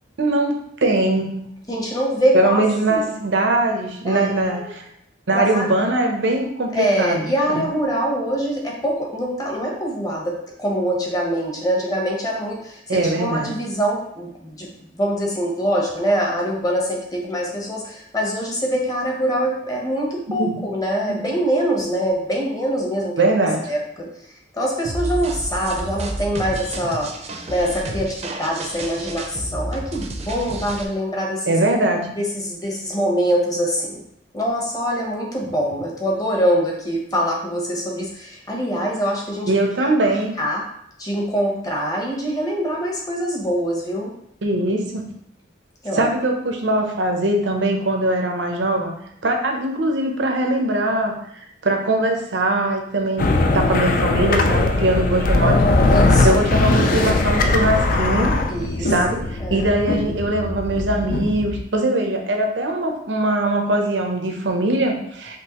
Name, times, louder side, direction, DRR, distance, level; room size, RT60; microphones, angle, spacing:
voice 1, 0.2-1.5 2.3-4.8 5.3-7.6 12.9-13.5 20.4-20.5 21.1-21.2 23.2-23.6 31.5-32.1 39.5-40.3 44.4-45.0 45.9-48.9 49.2-55.6 56.2-58.3 58.8-65.4, right 1 dB, 90° right, 3 dB, 0.7 m, -21 dB
voice 2, 1.7-3.1 4.0-4.7 5.3-5.7 6.7-23.3 23.7-24.1 24.5-27.1 27.5-31.6 32.2-34.0 34.3-39.5 39.8-40.6 41.0-44.1 45.8-46.1 55.9-56.4 58.5-59.7, equal, 20° left, -1 dB, 0.9 m, -24 dB
sound 1, 24.8-30.8, right 1 dB, 35° right, 0.5 m, -30 dB
sound 2, 53.2-61.6, left 2 dB, 50° left, 0.4 m, -19 dB
5.2 x 2.9 x 3.0 m, 0.72 s
head